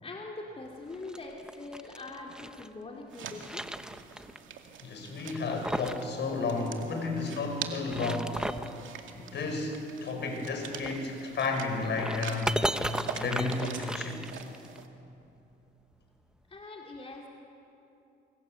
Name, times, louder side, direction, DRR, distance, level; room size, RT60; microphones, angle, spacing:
voice 1, 0.0-3.6 16.5-17.3, left 2 dB, 30° left, 0 dB, 3.0 m, -43 dB
sound 1, 0.9-2.7 3.1-4.4 4.6-4.7 5.3-6.1 6.3-6.4 7.7-8.8 10.7-14.8, right 1 dB, 5° right, 1.1 m, -36 dB
sound 2, 3.1-14.9, right 8 dB, 80° right, 2.3 m, -45 dB
voice 2, 4.8-8.6 9.2-12.6 13.1-14.3, left 3 dB, 60° left, 3 dB, 6.0 m, -32 dB
26.5 x 25.5 x 7.9 m, 2.8 s
cardioid pair, 90°, 20 cm